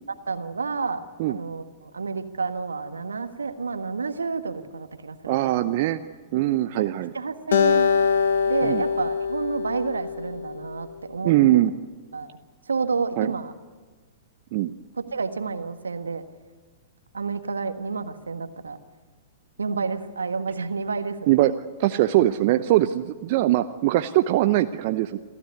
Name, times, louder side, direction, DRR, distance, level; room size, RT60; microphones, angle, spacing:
voice 1, 0.3-5.4 6.8-7.9 8.5-11.3 12.1-12.3 12.7-13.5 15.0-16.2 17.1-18.8 19.6-21.3, right 4 dB, 75° right, 9 dB, 1.5 m, -30 dB
voice 2, 5.3-6.0 6.3-7.1 8.6-8.8 11.2-11.7 13.2-13.3 14.5-14.7 21.3-21.5 21.8-25.2, right 15 dB, 45° right, 9 dB, 0.7 m, -21 dB
Acoustic guitar, 7.5-10.9, left 6 dB, 65° left, 1.3 m, -23 dB
27.5 x 14.0 x 9.6 m, 1.4 s
figure-of-eight pair, 105°, 0 cm